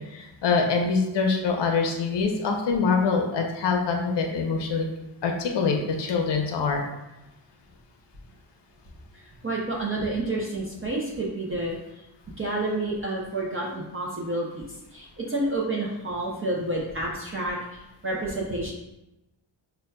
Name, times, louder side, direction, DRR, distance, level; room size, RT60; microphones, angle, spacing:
voice 1, 0.1-4.9 5.2-6.9, left 4 dB, 65° left, 2 dB, 0.6 m, -24 dB
voice 2, 9.1-11.8 12.4-18.7, right 2 dB, 30° right, -4 dB, 0.4 m, -29 dB
5.2 x 2.2 x 2.2 m, 0.95 s
wide cardioid pair, 175°, 45 cm